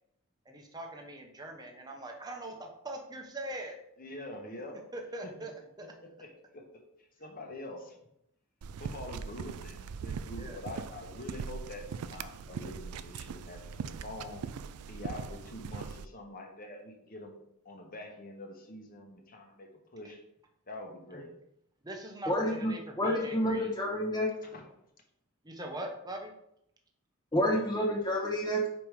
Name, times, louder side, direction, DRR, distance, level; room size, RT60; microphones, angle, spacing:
voice 1, 0.4-3.7 4.9-5.5 10.3-10.6 21.8-23.7 25.4-26.3, right 1 dB, 20° right, 2 dB, 0.9 m, -41 dB
voice 2, 4.0-4.7 6.2-6.6 7.2-7.9 8.8-14.4 14.9-17.4 17.6-20.2 20.7-21.3 24.4-24.6, left 2 dB, 40° left, 2 dB, 1.2 m, -45 dB
sound 1, 8.6-16.1, right 6 dB, 90° right, 0.4 m, -41 dB
voice 3, 22.3-22.7 23.0-24.3 27.3-28.6, equal, 20° left, -3 dB, 1.1 m, -29 dB
5.1 x 5.1 x 4.9 m, 0.77 s
head